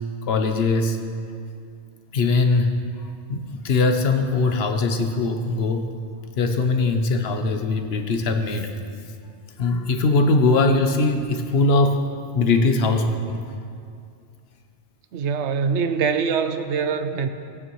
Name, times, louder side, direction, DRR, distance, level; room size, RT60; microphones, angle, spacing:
voice 1, 0.3-1.0 2.1-5.9 6.4-8.7 9.6-12.1 12.3-13.4, left 3 dB, 60° left, 6 dB, 1.0 m, -21 dB
voice 2, 15.1-17.3, right 6 dB, 75° right, 9 dB, 0.9 m, -23 dB
15.5 x 9.5 x 3.1 m, 2.3 s
omnidirectional pair, 1.2 m